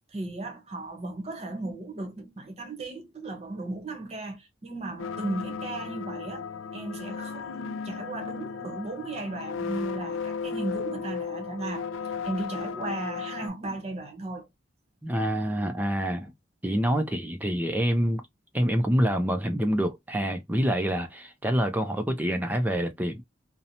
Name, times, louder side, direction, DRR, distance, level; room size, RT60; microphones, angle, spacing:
voice 1, 0.1-6.5 6.7-11.8 12.2-14.5, right 2 dB, 35° right, 0.8 m, -36 dB
sound 1, 5.0-13.5, left 5 dB, 85° left, 0.3 m, -35 dB
voice 2, 15.0-16.3 16.6-18.2 18.5-23.2, equal, 10° right, 0.3 m, -26 dB
2.8 x 2.0 x 2.7 m
head